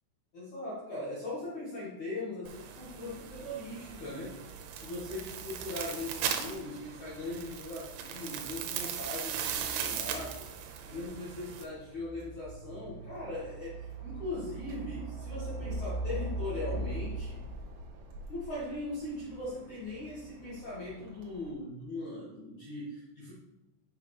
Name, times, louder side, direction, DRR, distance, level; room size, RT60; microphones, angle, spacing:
voice 1, 0.3-4.4 4.7-10.5 10.9-17.4 18.3-23.3, left 2 dB, 75° left, -7 dB, 1.7 m, -40 dB
sound 1, 2.5-11.6, right 8 dB, 85° right, 3.3 m, -38 dB
sound 2, 2.8-21.5, right 2 dB, 70° right, 2.6 m, -43 dB
7.7 x 6.7 x 3.1 m, 1.0 s
omnidirectional pair, 5.9 m